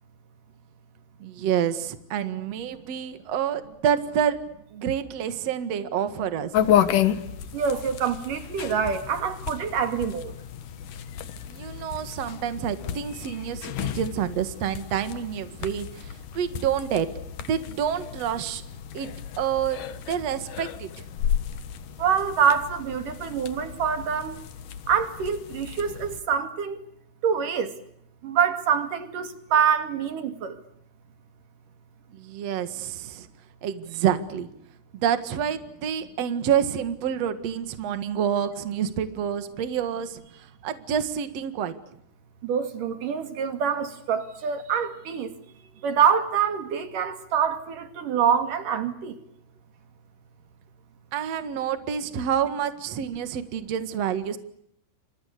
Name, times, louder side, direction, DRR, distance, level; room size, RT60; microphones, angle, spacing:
voice 1, 1.2-4.4 4.7-6.5 11.5-17.1 17.5-18.6 18.9-19.1 19.4-19.8 20.1-21.0 32.1-33.3 33.6-34.5 34.9-40.2 40.6-41.7 51.1-54.4, right 9 dB, 75° right, 1.5 m, -28 dB
sound 1, 6.5-26.2, left 9 dB, 65° left, 2.1 m, -32 dB
voice 2, 7.5-10.3 22.0-24.4 24.9-26.8 27.2-27.8 28.2-30.6 42.4-45.3 45.8-49.2, right 7 dB, 50° right, 3.3 m, -25 dB
30.0 x 27.5 x 6.7 m
omnidirectional pair, 5.9 m